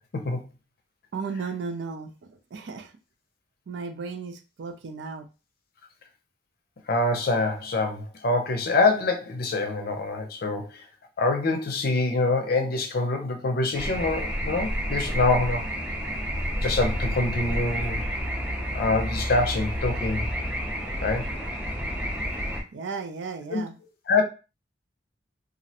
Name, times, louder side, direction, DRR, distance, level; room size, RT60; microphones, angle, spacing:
voice 1, 1.1-2.9 3.7-5.3 22.7-23.7, right 5 dB, 70° right, 0.4 m, -35 dB
voice 2, 6.9-10.8 11.2-15.7 16.6-18.0 18.7-20.3 21.0-21.2 23.5-23.6 24.1-24.2, left 3 dB, 55° left, 0.5 m, -25 dB
sound 1, 13.7-22.6, equal, 5° right, 0.5 m, -30 dB
2.4 x 2.0 x 2.7 m
head